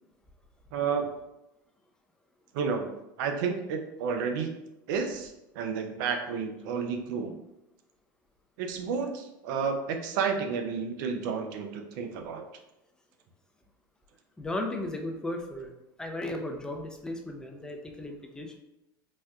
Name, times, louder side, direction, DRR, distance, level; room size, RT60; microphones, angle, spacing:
voice 1, 0.7-1.1 2.5-2.9 3.2-4.6 4.9-7.3 8.6-12.4, right 6 dB, 70° right, 5 dB, 0.5 m, -31 dB
voice 2, 14.4-15.7 16.0-18.6, left 1 dB, 5° left, 2 dB, 0.5 m, -35 dB
4.2 x 2.2 x 2.3 m, 0.90 s
hypercardioid pair, 95°, 11 cm